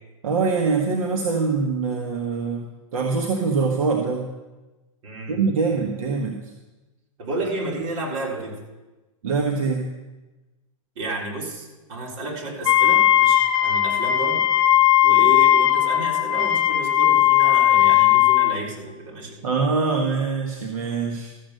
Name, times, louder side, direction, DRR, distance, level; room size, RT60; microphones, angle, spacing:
voice 1, 0.2-4.3 5.3-6.5 9.2-9.9 19.4-21.3, right 4 dB, 85° right, 1 dB, 1.5 m, -24 dB
voice 2, 5.0-5.8 7.2-8.5 11.0-14.5 15.0-19.4, right 2 dB, 60° right, -2 dB, 3.9 m, -31 dB
Wind instrument woodwind instrument, 12.6-18.6, left 13 dB, 65° left, 0.9 m, -17 dB
13.5 x 7.8 x 6.6 m, 1.1 s
hypercardioid pair, 135°, 18 cm